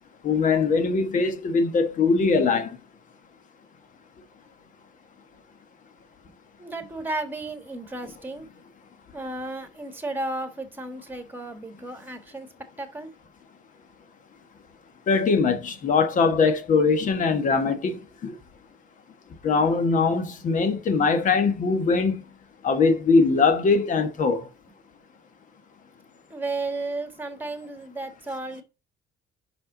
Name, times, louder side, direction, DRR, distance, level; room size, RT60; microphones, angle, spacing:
voice 1, 0.2-2.8 15.1-18.4 19.4-22.2 22.6-24.5, left 4 dB, 50° left, 1.4 m, -21 dB
voice 2, 6.6-8.5 9.1-12.5 12.8-13.1 26.3-28.6, right 2 dB, 10° right, 1.6 m, -33 dB
5.7 x 5.6 x 3.9 m
cardioid pair, 110°, 17 cm